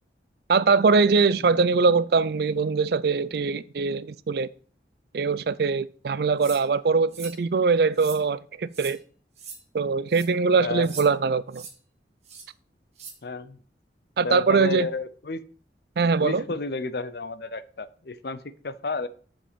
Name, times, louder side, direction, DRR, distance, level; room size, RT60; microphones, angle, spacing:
voice 1, 0.5-4.5 5.1-9.0 9.7-11.6 14.2-14.9 16.0-16.4, right 4 dB, 60° right, 0.4 m, -22 dB
sound 1, 6.4-6.6 7.1-7.4 7.9-8.2 8.7-9.0 9.4-9.6 10.1-10.3 10.8-11.1 11.5-11.7 12.2-12.5 13.0-13.1, right 6 dB, 35° right, 1.7 m, -41 dB
voice 2, 13.2-13.6 14.2-15.4 16.2-19.1, left 3 dB, 60° left, 0.6 m, -31 dB
7.2 x 5.3 x 6.7 m
head